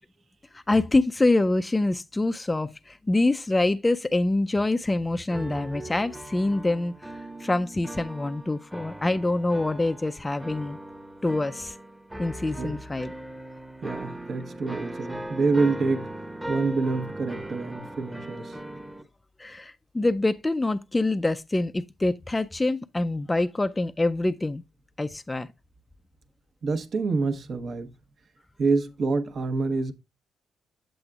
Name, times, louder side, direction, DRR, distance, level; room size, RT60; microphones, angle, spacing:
voice 1, 0.5-10.8 11.2-11.8 12.2-13.1 19.4-24.6 25.0-25.5, left 2 dB, 15° left, 0.4 m, -25 dB
sound 1, 5.3-19.0, right 1 dB, 10° right, 0.9 m, -39 dB
voice 2, 13.8-16.1 16.5-18.6 26.6-27.9 28.6-29.9, right 4 dB, 50° right, 1.0 m, -27 dB
8.0 x 7.7 x 2.3 m
cardioid pair, 90°, 0 cm